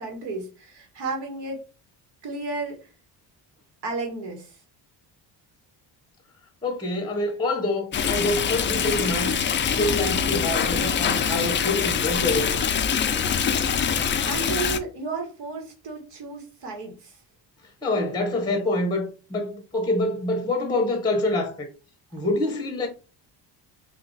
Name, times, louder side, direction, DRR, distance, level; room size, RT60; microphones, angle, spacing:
voice 1, 0.0-1.7 2.2-2.9 3.8-4.6 14.2-17.2, right 3 dB, 70° right, 1.5 m, -33 dB
voice 2, 6.6-9.4 9.8-12.6 17.8-21.7 22.1-22.9, left 2 dB, 10° left, 0.8 m, -26 dB
Stream, 7.9-14.8, left 7 dB, 30° left, 0.3 m, -24 dB
3.8 x 2.4 x 3.9 m
cardioid pair, 140°, 42 cm